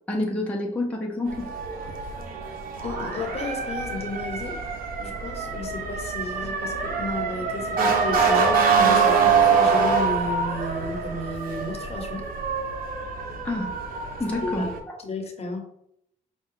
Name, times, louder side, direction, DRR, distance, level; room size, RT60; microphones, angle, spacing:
voice 1, 0.1-1.5 6.7-6.8 13.4-13.7 14.2-14.7, left 2 dB, 10° left, -2 dB, 0.7 m, -28 dB
Motor vehicle (road) / Siren, 1.3-14.8, right 5 dB, 85° right, 0.7 m, -25 dB
voice 2, 2.8-4.6 5.0-12.3 14.4-14.7 15.0-15.6, left 2 dB, 45° left, 3 dB, 0.9 m, -33 dB
5.3 x 2.3 x 3.7 m, 0.73 s
cardioid pair, 120°, 15 cm